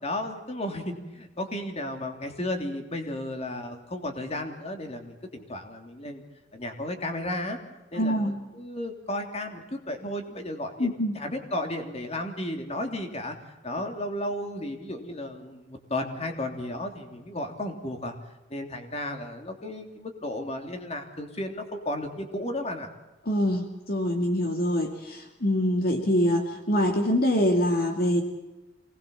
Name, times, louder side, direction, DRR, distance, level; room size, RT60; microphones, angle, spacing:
voice 1, 0.0-6.2 6.5-7.6 7.9-10.9 11.1-13.3 13.6-18.1 18.5-22.9, left 1 dB, 35° left, 5 dB, 3.2 m, -34 dB
voice 2, 8.0-8.4 10.8-11.2 23.3-28.2, equal, 55° left, 3 dB, 2.6 m, -24 dB
26.5 x 20.0 x 7.1 m, 1.0 s
head